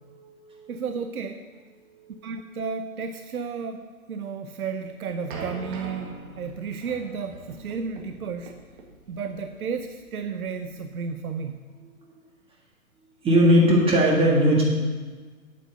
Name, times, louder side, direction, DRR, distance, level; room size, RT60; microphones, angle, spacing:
voice 1, 0.0-0.8 1.8-2.4 13.2-14.6, equal, 15° right, -2 dB, 1.8 m, -20 dB
voice 2, 0.7-1.4 2.2-8.5 9.1-11.6, right 5 dB, 75° right, 7 dB, 0.8 m, -33 dB
sound 1, 4.6-11.5, right 3 dB, 35° right, 1.8 m, -42 dB
8.6 x 8.3 x 6.5 m, 1.4 s
figure-of-eight pair, 125°, 44 cm